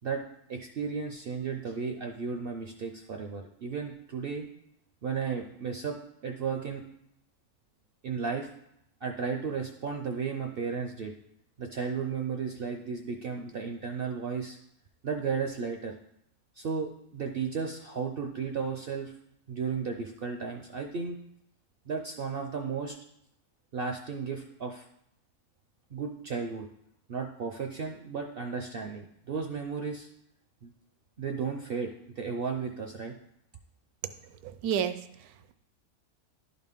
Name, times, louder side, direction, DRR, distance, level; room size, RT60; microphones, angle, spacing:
voice 1, 0.5-4.4 5.0-6.0 6.2-6.8 8.0-8.5 9.0-11.1 11.6-14.6 15.0-15.9 16.6-19.1 19.5-21.2 21.9-23.0 23.7-24.8 25.9-26.7 27.1-30.1 30.6-30.7 31.2-33.1, right 5 dB, 60° right, 3 dB, 0.6 m, -34 dB
voice 2, 34.0-35.5, right 8 dB, 80° right, 11 dB, 1.1 m, -33 dB
11.5 x 4.1 x 3.6 m, 0.76 s
omnidirectional pair, 1.6 m